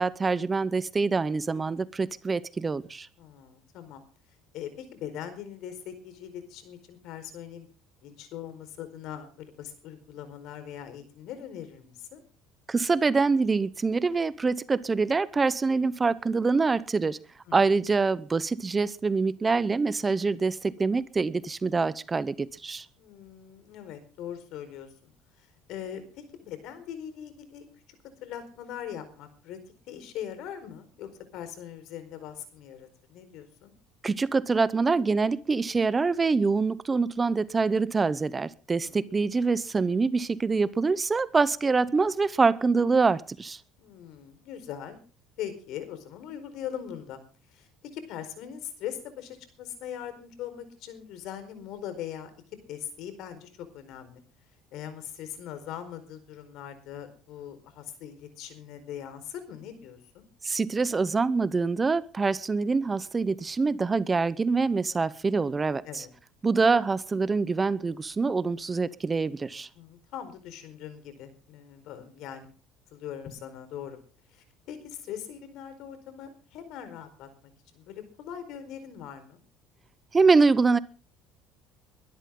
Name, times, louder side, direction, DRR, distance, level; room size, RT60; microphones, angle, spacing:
voice 1, 0.0-3.1 12.7-17.2 17.5-22.9 34.0-43.6 60.4-66.1 66.4-69.7 80.1-80.8, right 4 dB, 20° right, 17 dB, 0.8 m, -25 dB
voice 2, 3.2-4.0 4.5-7.7 8.0-12.2 17.5-17.9 23.0-25.1 25.4-27.7 28.2-29.6 29.9-33.7 38.8-39.0 43.8-45.0 45.4-47.2 47.5-52.3 52.7-54.2 54.7-60.2 65.9-66.1 69.8-72.5 72.9-74.0 74.3-77.3 77.7-79.4, left 9 dB, 65° left, 11 dB, 4.5 m, -41 dB
22.5 x 12.5 x 3.8 m, 0.36 s
cardioid pair, 120°, 0 cm